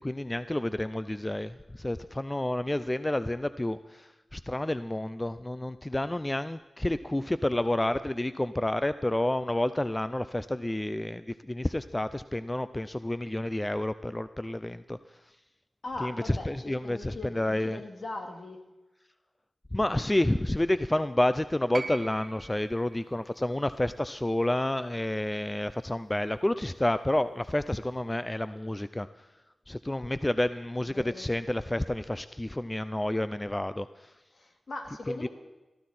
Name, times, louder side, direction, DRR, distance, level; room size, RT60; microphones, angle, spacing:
voice 1, 0.0-15.0 16.0-17.8 19.7-29.1 29.7-34.1 35.1-35.3, left 1 dB, 20° left, 13 dB, 0.5 m, -30 dB
voice 2, 15.8-18.6 30.9-31.3 34.3-35.3, left 2 dB, 60° left, 4 dB, 2.4 m, -40 dB
sound 1, 21.7-25.9 27.1-27.2, right 3 dB, 50° right, 1.7 m, -44 dB
19.0 x 14.0 x 4.3 m, 1.1 s
cardioid pair, 55°, 0 cm